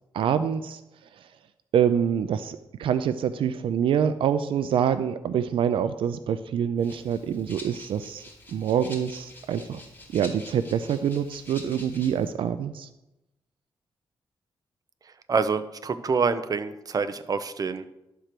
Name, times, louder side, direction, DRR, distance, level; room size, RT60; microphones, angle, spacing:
voice 1, 0.1-0.8 1.7-8.2 8.5-9.8 10.1-12.9, right 8 dB, 85° right, 12 dB, 0.4 m, -26 dB
Rattle (instrument), 6.8-12.3, left 2 dB, 20° left, 2.8 m, -46 dB
voice 2, 15.3-17.9, right 5 dB, 45° right, 11 dB, 0.7 m, -26 dB
11.5 x 4.5 x 6.7 m, 0.91 s
cardioid pair, 80°, 9 cm